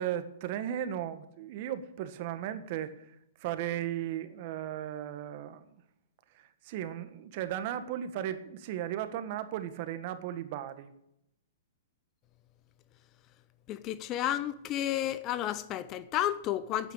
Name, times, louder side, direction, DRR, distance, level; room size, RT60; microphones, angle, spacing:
voice 1, 0.0-3.0 3.4-5.6 6.6-10.9, right 11 dB, 50° right, 1.4 m, -36 dB
voice 2, 13.7-16.9, left 12 dB, 35° left, 0.9 m, -32 dB
11.5 x 9.1 x 8.6 m
hypercardioid pair, 120°, 0 cm